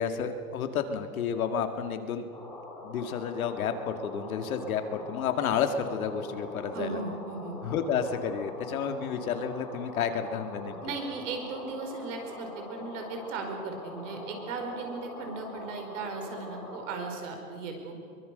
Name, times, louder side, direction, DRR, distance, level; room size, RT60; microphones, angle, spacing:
voice 1, 0.0-2.3 2.8-7.0 7.6-10.8, left 7 dB, 65° left, 7 dB, 2.2 m, -31 dB
sound 1, 2.3-17.1, left 1 dB, 5° left, 3.9 m, -44 dB
voice 2, 6.7-7.6 10.8-17.9, right 4 dB, 50° right, 4 dB, 4.9 m, -37 dB
23.0 x 22.0 x 6.7 m, 2.4 s
hypercardioid pair, 150°, 46 cm